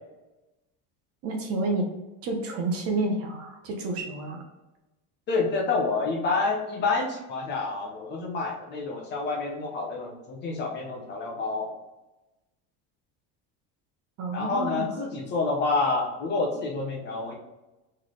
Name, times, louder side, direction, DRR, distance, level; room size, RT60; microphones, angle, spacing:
voice 1, 1.2-1.9 2.2-4.4 14.2-14.9, right 2 dB, 40° right, 2 dB, 0.7 m, -29 dB
voice 2, 5.3-11.7 14.3-17.3, left 3 dB, 30° left, 0 dB, 0.7 m, -28 dB
3.8 x 3.2 x 3.7 m, 1.0 s
cardioid pair, 180°, 35 cm